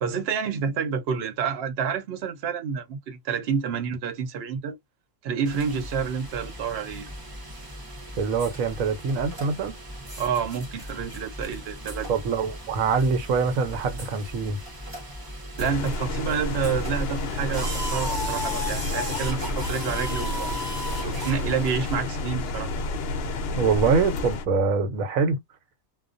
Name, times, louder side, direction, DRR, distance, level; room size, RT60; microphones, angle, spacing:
voice 1, 0.0-4.8 5.2-7.1 10.2-12.1 15.6-20.5 21.0-22.7, right 6 dB, 55° right, 0.9 m, -29 dB
sound 1, 5.5-22.0, equal, 20° right, 0.7 m, -36 dB
voice 2, 8.2-9.7 12.1-14.6 23.5-25.4, right 5 dB, 80° right, 1.1 m, -24 dB
sound 2, 15.6-24.4, left 2 dB, 60° left, 0.7 m, -30 dB
2.4 x 2.2 x 2.4 m
omnidirectional pair, 1.4 m